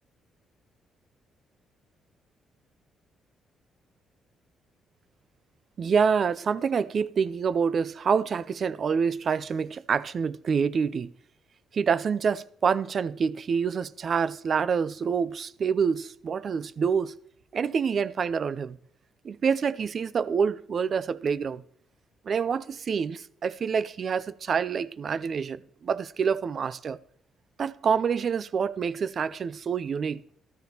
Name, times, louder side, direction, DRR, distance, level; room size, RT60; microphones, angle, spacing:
voice 1, 5.8-11.1 11.7-17.2 17.5-18.8 19.2-21.6 22.3-27.0 27.6-30.2, right 6 dB, 50° right, 0.4 m, -27 dB
14.0 x 13.0 x 2.9 m
cardioid pair, 90°, 0 cm